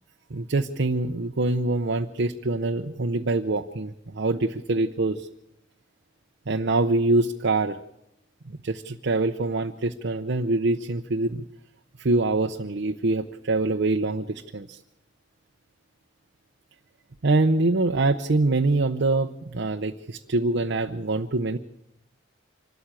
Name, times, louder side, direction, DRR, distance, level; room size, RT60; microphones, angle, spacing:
voice 1, 0.3-5.3 6.5-7.8 8.6-11.4 12.0-14.8 17.2-21.6, right 2 dB, 65° right, 6 dB, 0.7 m, -24 dB
25.5 x 13.0 x 8.9 m, 0.85 s
head